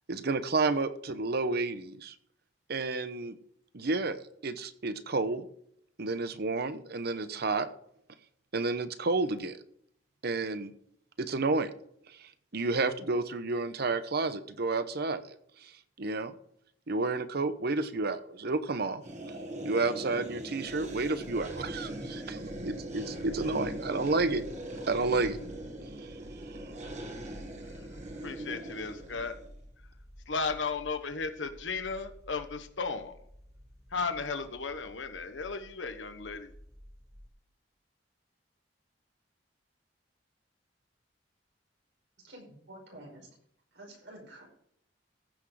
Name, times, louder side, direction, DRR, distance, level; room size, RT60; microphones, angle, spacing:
voice 1, 0.1-2.1 2.7-3.4 3.7-5.5 6.0-7.7 8.5-9.6 10.2-10.7 11.2-11.7 12.1-15.7 16.0-16.3 16.9-19.0 19.6-24.4 24.9-25.4 26.0-26.1 26.5-26.7, right 3 dB, 60° right, 11 dB, 0.9 m, -31 dB
sound 1, 19.0-29.5, right 1 dB, 40° right, 1.8 m, -41 dB
sound 2, 20.6-37.3, equal, 25° right, 2.3 m, -52 dB
voice 2, 28.2-29.3 30.3-33.1 33.9-36.5, left 4 dB, 85° left, 8 dB, 1.2 m, -35 dB
voice 3, 42.2-43.3 43.7-44.5, right 1 dB, 85° right, -1 dB, 5.3 m, -49 dB
15.0 x 6.2 x 4.9 m, 0.68 s
head